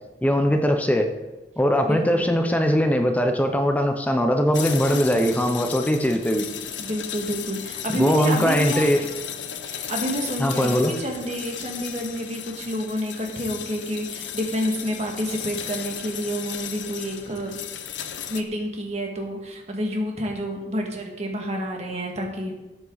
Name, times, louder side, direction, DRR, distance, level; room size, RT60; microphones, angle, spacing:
voice 1, 0.2-1.1 1.6-6.5 7.9-9.0 10.4-10.9, equal, 10° left, 5 dB, 0.7 m, -21 dB
voice 2, 1.8-2.3 4.9-5.3 6.8-8.9 9.6-17.6 18.3-22.5, equal, 35° right, 1 dB, 2.1 m, -29 dB
sound 1, 4.5-18.4, left 9 dB, 85° left, 0.8 m, -35 dB
13.0 x 8.5 x 4.1 m, 1.1 s
head